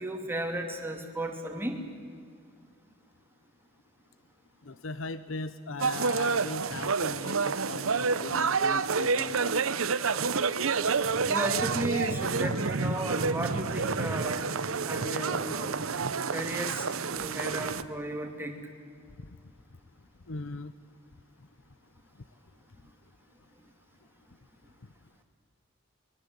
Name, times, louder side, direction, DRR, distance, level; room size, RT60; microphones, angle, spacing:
voice 1, 0.0-1.8 10.0-10.2 11.3-14.5 14.8-15.8 16.3-16.9 17.1-18.6, right 1 dB, 10° right, 3 dB, 3.1 m, -34 dB
voice 2, 4.6-9.5 20.3-20.7, left 3 dB, 70° left, 14 dB, 0.8 m, -39 dB
sound 1, 5.8-17.8, right 5 dB, 90° right, 0.9 m, -29 dB
24.5 x 22.5 x 8.3 m, 2.2 s
head